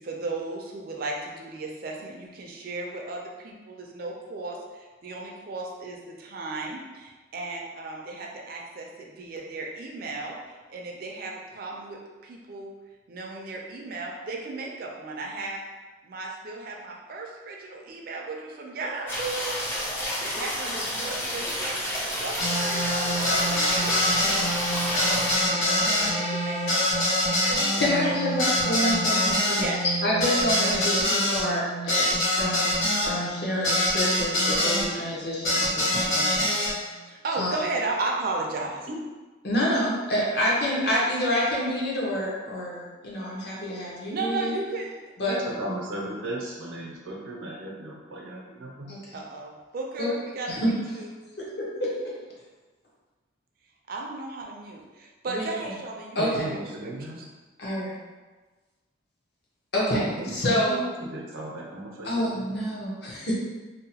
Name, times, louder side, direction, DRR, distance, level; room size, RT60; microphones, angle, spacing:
voice 1, 0.0-12.7 13.1-15.6 16.0-21.8 22.2-24.4 24.9-25.2 25.5-27.9 28.2-28.4 29.5-29.8 37.1-38.9 44.1-45.0 49.1-51.1 53.9-56.6 56.8-57.3, right 3 dB, 45° right, -1 dB, 0.3 m, -35 dB
sound 1, 19.1-25.3, equal, 10° left, 0.5 m, -30 dB
sound 2, 22.4-34.9 35.4-36.7, left 1 dB, 85° left, 0.8 m, -25 dB
voice 2, 27.8-36.6 37.4-37.5 39.4-44.5 45.2-45.4 48.9-49.2 50.0-50.1 50.5-50.7 51.6-51.9 55.3-55.5 56.2-56.5 57.6-58.0 59.7-60.8 62.0-63.3, equal, 55° left, -5 dB, 0.7 m, -27 dB
voice 3, 45.2-49.0 56.2-57.2 60.2-62.1, right 1 dB, 85° right, -2 dB, 0.6 m, -35 dB
2.7 x 2.0 x 2.8 m, 1.3 s
head